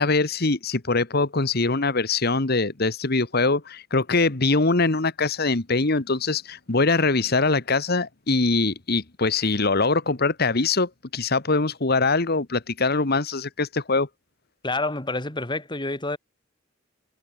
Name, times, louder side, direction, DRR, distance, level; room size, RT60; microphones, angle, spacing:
voice 1, 0.0-14.1, left 3 dB, 55° left, 1.6 m, -23 dB
voice 2, 14.6-16.2, left 2 dB, 25° left, 2.8 m, -28 dB
head